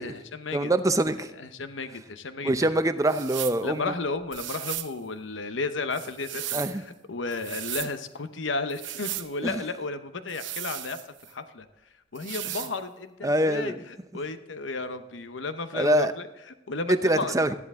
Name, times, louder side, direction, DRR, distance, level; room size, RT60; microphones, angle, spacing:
voice 1, 0.0-0.7 1.4-2.7 3.6-11.7 12.1-13.7 14.1-17.3, left 3 dB, 80° left, 10 dB, 0.9 m, -33 dB
voice 2, 0.5-1.3 2.4-3.9 6.5-6.8 9.4-9.6 13.2-13.8 15.7-16.1 16.9-17.5, right 1 dB, 15° right, 10 dB, 0.6 m, -24 dB
sound 1, 3.1-3.6 4.3-4.9 5.9-6.8 7.3-7.9 8.7-9.3 10.3-11.3 12.1-12.7, right 13 dB, 75° right, 0.7 m, -36 dB
13.5 x 10.5 x 3.7 m, 0.99 s
head